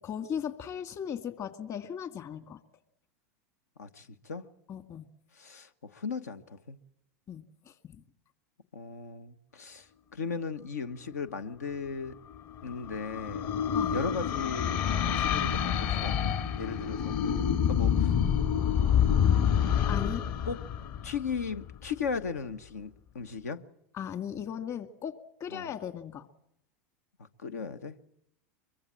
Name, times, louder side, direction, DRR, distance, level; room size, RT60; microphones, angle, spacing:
voice 1, 0.0-2.6 4.7-5.1 7.3-8.0 13.7-14.0 19.3-20.2 23.9-26.3, left 8 dB, 40° left, 2.1 m, -38 dB
voice 2, 3.8-4.4 5.3-6.8 8.7-12.2 12.6-13.5 13.9-17.1 17.7-18.1 20.4-20.6 21.0-23.6 25.5-25.7 27.2-27.9, left 5 dB, 85° left, 1.2 m, -37 dB
sound 1, 12.2-21.7, left 8 dB, 55° left, 3.0 m, -28 dB
23.5 x 23.0 x 7.5 m
hypercardioid pair, 95°, 8 cm